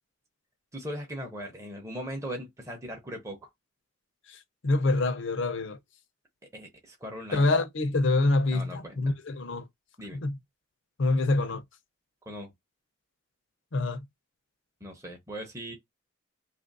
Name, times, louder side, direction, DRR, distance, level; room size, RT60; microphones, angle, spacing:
voice 1, 0.7-3.5 6.5-7.5 8.5-9.0 10.0-10.2 12.3-12.5 14.8-15.7, equal, 15° right, 0.7 m, -39 dB
voice 2, 4.3-5.8 7.3-9.6 10.1-10.4 11.0-11.6 13.7-14.0, left 2 dB, 60° left, 0.6 m, -26 dB
2.8 x 2.5 x 3.9 m
head